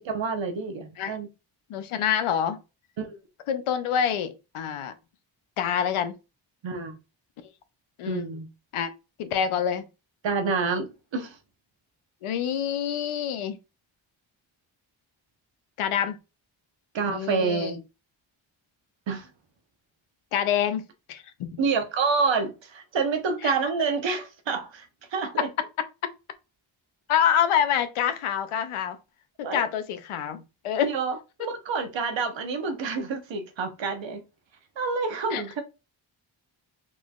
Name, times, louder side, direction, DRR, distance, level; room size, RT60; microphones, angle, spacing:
voice 1, 0.1-1.3 3.0-3.1 6.6-7.0 8.1-8.5 10.2-11.4 16.9-17.8 19.1-19.3 21.6-24.9 25.1-25.5 29.4-29.6 30.8-34.2 34.8-35.6, right 4 dB, 65° right, 1.0 m, -28 dB
voice 2, 1.7-2.6 3.5-4.9 5.6-6.1 8.0-8.3 8.7-8.9 9.2-9.8 12.2-13.6 15.8-16.2 17.1-17.7 20.3-20.8 21.1-21.5 23.4-23.5 27.1-29.0 29.4-30.9 35.3-35.4, left 9 dB, 90° left, 0.7 m, -26 dB
3.8 x 3.1 x 2.3 m
cardioid pair, 60°, 48 cm